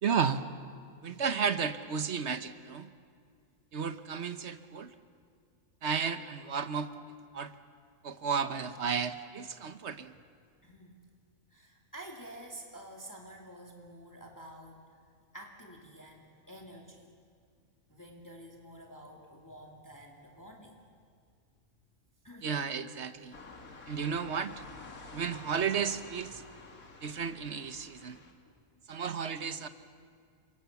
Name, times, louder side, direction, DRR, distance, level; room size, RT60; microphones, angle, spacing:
voice 1, 0.0-0.4 1.0-2.9 3.7-4.9 5.8-6.9 7.3-7.5 8.0-10.1 22.4-23.3 23.9-24.5 25.1-26.4 27.0-28.2 28.9-29.7, right 6 dB, 55° right, 11 dB, 1.2 m, -33 dB
voice 2, 10.6-11.0 11.5-15.0 15.3-17.1 17.9-20.9 22.2-22.5 28.4-28.5, right 1 dB, 15° left, 1 dB, 2.3 m, -49 dB
sound 1, 23.3-28.3, left 3 dB, 90° left, 2.6 m, -50 dB
29.5 x 24.5 x 7.1 m, 2.1 s
omnidirectional pair, 1.4 m